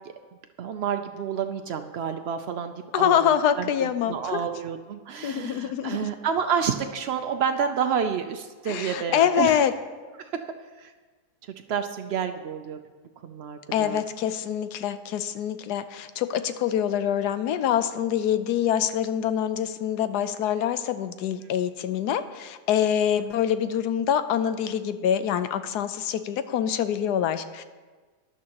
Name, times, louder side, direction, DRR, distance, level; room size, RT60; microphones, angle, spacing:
voice 1, 0.6-9.6 10.2-10.3 10.8-10.9 11.7-12.8 13.2-14.0, right 7 dB, 80° right, 7 dB, 0.5 m, -29 dB
voice 2, 2.9-4.4 5.2-6.1 8.7-9.7 13.7-27.6, left 9 dB, 80° left, 11 dB, 1.2 m, -25 dB
15.0 x 11.0 x 2.9 m, 1.4 s
omnidirectional pair, 1.7 m